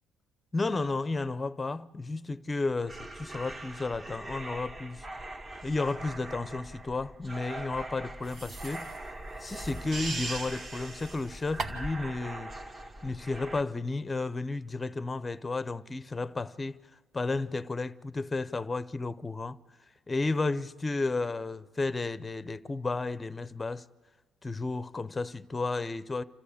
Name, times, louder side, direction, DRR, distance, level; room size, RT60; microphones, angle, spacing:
voice 1, 0.5-5.1 5.6-8.9 9.4-12.5 13.0-16.8 17.1-19.6 20.1-23.8 24.4-26.2, left 3 dB, 20° left, 0.6 m, -32 dB
sound 1, 2.8-13.6, right 2 dB, 30° right, 1.3 m, -43 dB
sound 2, 8.2-12.0, right 3 dB, 50° right, 1.8 m, -39 dB
28.0 x 13.5 x 8.4 m
cardioid pair, 100°, 0 cm